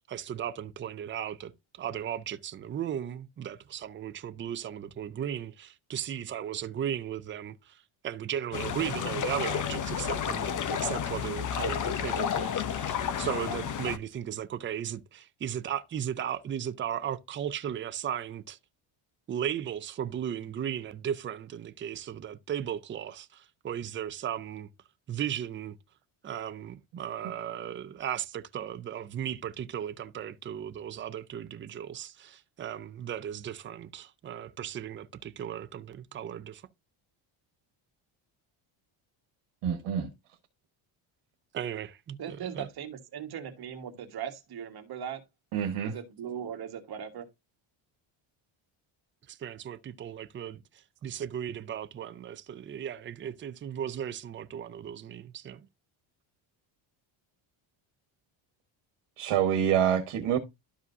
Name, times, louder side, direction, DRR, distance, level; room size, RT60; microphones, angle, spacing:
voice 1, 0.1-18.6 19.3-24.7 25.1-25.8 26.2-36.6 41.5-42.7 49.3-55.7, right 9 dB, 25° right, 0.5 m, -36 dB
sound 1, 8.5-14.0, left 8 dB, 40° left, 0.8 m, -31 dB
voice 2, 39.6-40.1 45.5-45.9 59.2-60.4, right 9 dB, 75° right, 1.5 m, -26 dB
voice 3, 42.2-45.2 45.8-47.3, right 8 dB, 50° right, 1.7 m, -39 dB
12.5 x 4.9 x 2.6 m
cardioid pair, 160°, 49 cm